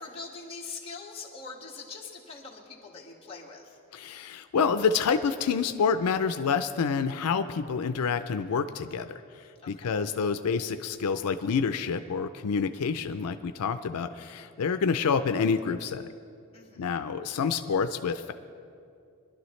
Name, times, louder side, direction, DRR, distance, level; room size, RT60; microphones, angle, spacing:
voice 1, 0.0-3.8 9.6-9.9 16.5-16.9, left 4 dB, 25° left, -4 dB, 1.8 m, -43 dB
voice 2, 3.9-16.0 16.8-18.3, left 5 dB, 85° left, 9 dB, 0.4 m, -28 dB
22.0 x 11.5 x 3.2 m, 2.5 s
head